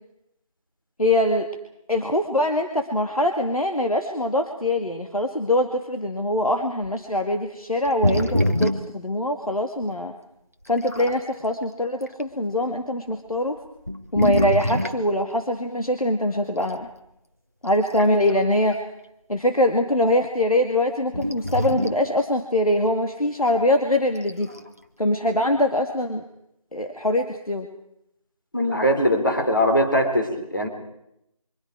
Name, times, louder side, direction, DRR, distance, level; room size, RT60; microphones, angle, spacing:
voice 1, 1.0-1.5 1.9-10.1 10.7-13.6 14.1-16.9 17.6-18.8 19.3-24.5 25.0-26.2 26.7-27.7, left 1 dB, 85° left, 4 dB, 2.3 m, -23 dB
sound 1, 6.8-7.0 7.8-9.0 9.8-9.9 10.6-11.3 12.0-12.2 13.1-13.2 13.8-15.1 16.7-16.9 17.7-18.4 18.7-18.8 21.1-22.1 24.2-24.7, left 1 dB, 25° right, 0.9 m, -25 dB
voice 2, 28.5-30.7, equal, 35° left, 2 dB, 3.5 m, -21 dB
27.5 x 24.5 x 4.8 m, 0.81 s
figure-of-eight pair, 180°, 18 cm